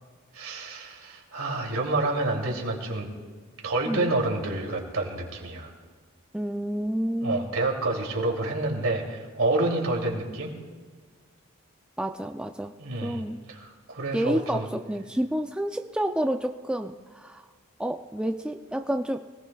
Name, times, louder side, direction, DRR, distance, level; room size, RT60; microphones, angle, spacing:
voice 1, 0.3-3.1 3.6-5.7 7.2-10.5 12.8-14.7, right 2 dB, 75° right, 0 dB, 2.8 m, -28 dB
voice 2, 6.3-7.5 12.0-12.7 13.0-13.4 14.1-16.9 17.2-17.4 17.8-19.2, right 1 dB, 5° right, 5 dB, 0.4 m, -29 dB
24.5 x 18.0 x 2.3 m, 1.5 s
head